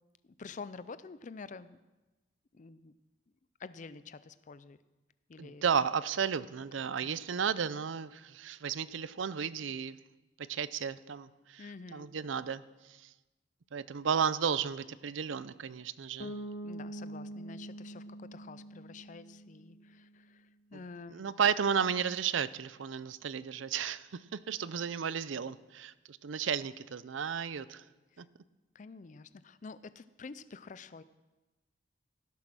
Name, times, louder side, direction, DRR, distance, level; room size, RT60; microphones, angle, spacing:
voice 1, 0.2-1.8 2.5-2.9 3.6-4.8 5.3-5.7 7.0-7.1 11.6-12.1 16.6-21.2 28.1-28.2 28.7-31.0, left 4 dB, 40° left, 15 dB, 0.4 m, -48 dB
voice 2, 5.4-10.0 10.4-11.6 11.9-13.1 13.7-16.4 21.1-27.8 28.2-28.3, right 7 dB, 80° right, 17 dB, 0.5 m, -33 dB
Bass guitar, 16.2-20.1, right 1 dB, 55° left, 1.1 m, -44 dB
16.5 x 7.4 x 6.1 m, 1.1 s
head